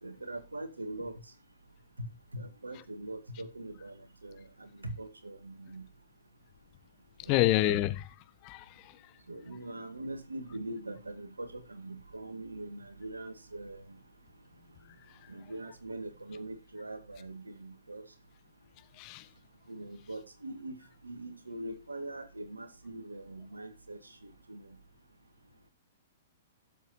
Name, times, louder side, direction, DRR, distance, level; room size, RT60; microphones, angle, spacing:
voice 1, 0.0-1.2 2.3-5.8 7.2-7.7 9.3-14.0 15.3-18.1 19.7-20.8 21.0-24.8, right 2 dB, 90° right, 2.1 m, -42 dB
voice 2, 7.3-8.1 8.4-8.6 19.0-19.2, left 15 dB, 40° left, 1.3 m, -27 dB
17.0 x 7.5 x 2.8 m
figure-of-eight pair, 115°, 0 cm